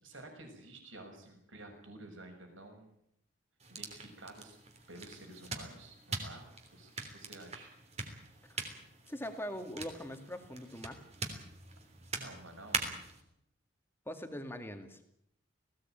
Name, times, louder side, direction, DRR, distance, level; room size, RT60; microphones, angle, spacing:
voice 1, 0.0-3.0 3.7-4.6 4.9-7.7 12.1-13.0, right 2 dB, 75° right, 4 dB, 6.3 m, -51 dB
sound 1, 3.6-13.2, right 4 dB, 30° right, 3.3 m, -43 dB
voice 2, 9.1-11.0 14.1-15.0, equal, 10° left, 7 dB, 2.2 m, -42 dB
20.0 x 17.0 x 9.0 m, 0.74 s
head